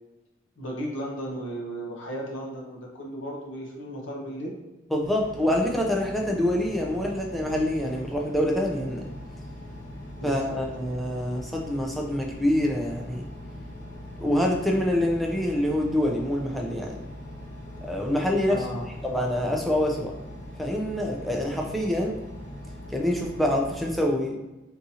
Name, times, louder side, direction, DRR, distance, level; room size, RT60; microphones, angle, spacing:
voice 1, 0.6-4.5 10.2-10.6 18.5-18.9, equal, 75° left, -1 dB, 0.8 m, -35 dB
voice 2, 4.9-9.0 10.2-13.2 14.2-17.0 17.8-18.6 19.0-20.1 20.6-22.1 22.9-24.4, left 1 dB, ahead, -1 dB, 0.4 m, -26 dB
Engine, 5.0-23.9, left 1 dB, 60° left, 1.4 m, -41 dB
3.6 x 2.6 x 2.7 m, 1.0 s
head